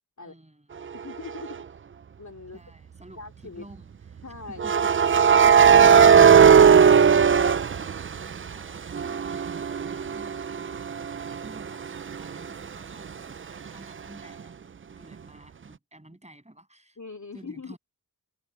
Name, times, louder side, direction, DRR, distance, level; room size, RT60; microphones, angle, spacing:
voice 1, 0.2-0.8 2.5-4.9 12.2-14.5 15.0-17.0 17.3-17.8, right 1 dB, 15° right, 7.5 m, -51 dB
voice 2, 0.9-1.7 2.2-2.6 3.2-3.7 4.2-4.8 17.0-17.8, left 4 dB, 45° left, 2.7 m, -42 dB
sound 1, 1.3-1.5 4.6-8.5 8.9-12.5, right 7 dB, 30° right, 0.4 m, -17 dB
wide cardioid pair, 85°, 41 cm